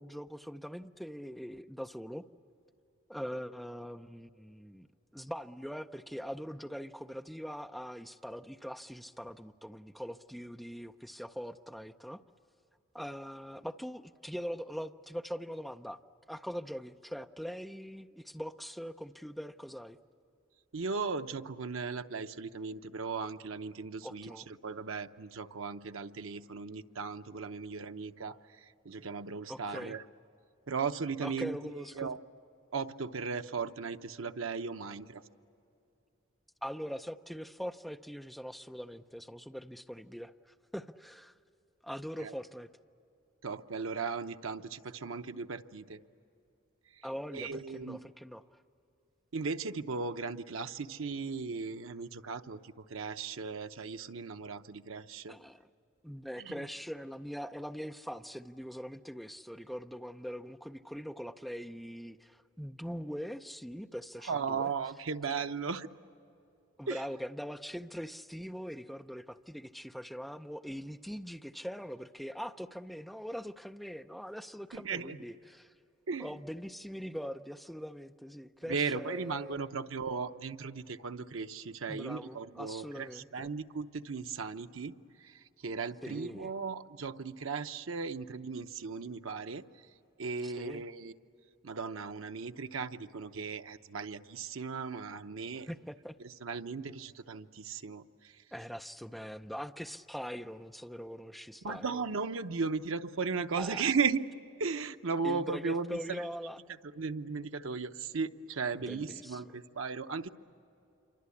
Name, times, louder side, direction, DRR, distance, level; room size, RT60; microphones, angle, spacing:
voice 1, 0.0-2.3 3.1-4.9 5.1-12.2 12.9-16.0 16.3-20.0 24.0-24.5 29.5-30.0 31.2-32.1 36.6-41.3 41.8-42.7 47.0-48.4 55.3-55.6 56.0-64.7 66.8-75.7 76.2-79.7 81.9-83.5 86.0-86.5 90.4-90.8 95.7-96.2 98.5-102.0 103.6-103.8 105.2-106.6 108.7-109.4, equal, ahead, 7 dB, 0.5 m, -42 dB
voice 2, 20.7-30.0 30.7-32.2 32.7-35.2 42.2-42.3 43.4-46.0 47.3-48.0 49.3-55.4 56.4-56.7 64.2-65.9 66.9-67.0 74.7-75.2 76.1-76.3 78.6-89.6 90.2-91.1 91.6-95.7 96.2-98.4 101.6-104.2 104.6-106.2 107.0-110.3, right 5 dB, 85° right, 8 dB, 0.8 m, -36 dB
27.5 x 24.5 x 8.5 m, 2.7 s
head